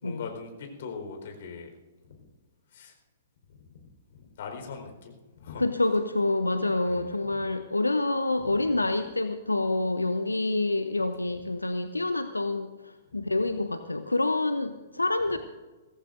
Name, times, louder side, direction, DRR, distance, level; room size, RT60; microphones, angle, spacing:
voice 1, 0.0-1.7 2.1-2.2 2.7-2.9 3.7-3.9 4.1-5.6 6.8-7.5 8.4-8.8, left 5 dB, 55° left, 3 dB, 4.5 m, -41 dB
voice 2, 5.6-15.4, left 2 dB, 90° left, 9 dB, 0.8 m, -27 dB
23.5 x 17.0 x 2.7 m, 1.3 s
figure-of-eight pair, 115°, 0 cm